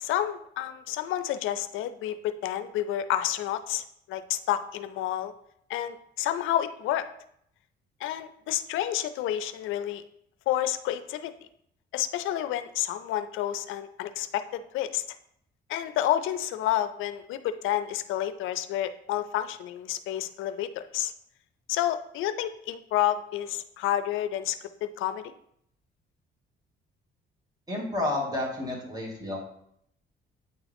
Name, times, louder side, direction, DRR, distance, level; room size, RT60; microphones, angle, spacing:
voice 1, 0.0-5.3 5.7-7.1 8.0-10.0 10.5-11.3 11.9-15.0 15.7-21.1 21.7-25.3, left 12 dB, 85° left, 12 dB, 0.4 m, -30 dB
voice 2, 27.7-29.4, left 2 dB, 20° right, -2 dB, 2.1 m, -30 dB
8.8 x 3.6 x 3.4 m, 0.71 s
cardioid pair, 90°, 20 cm